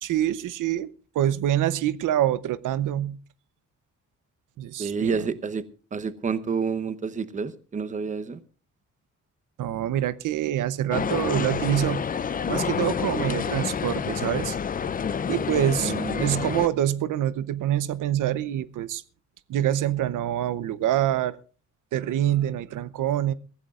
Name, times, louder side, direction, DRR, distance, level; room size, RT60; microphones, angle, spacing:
voice 1, 0.0-3.2 4.6-5.3 9.6-12.0 12.5-14.6 15.3-19.0 19.5-21.4 21.9-23.3, right 12 dB, 85° right, 0.8 m, -26 dB
voice 2, 4.8-5.6 5.9-8.4 15.8-16.4, right 5 dB, 25° right, 0.9 m, -29 dB
sound 1, 10.9-16.7, left 6 dB, 30° left, 0.6 m, -28 dB
23.0 x 16.0 x 2.4 m
cardioid pair, 175°, 31 cm